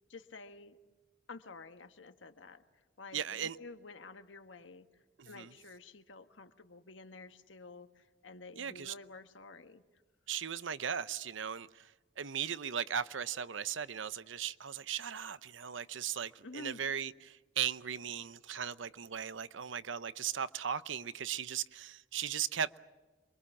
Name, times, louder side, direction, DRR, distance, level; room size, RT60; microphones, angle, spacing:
voice 1, 0.1-0.8 1.3-2.6 3.0-4.8 5.2-9.8 16.4-16.8, left 3 dB, 85° left, 1.5 m, -50 dB
voice 2, 3.1-3.6 5.2-5.5 8.6-8.9 10.3-22.7, right 8 dB, 85° right, 0.8 m, -37 dB
27.5 x 23.5 x 7.2 m
head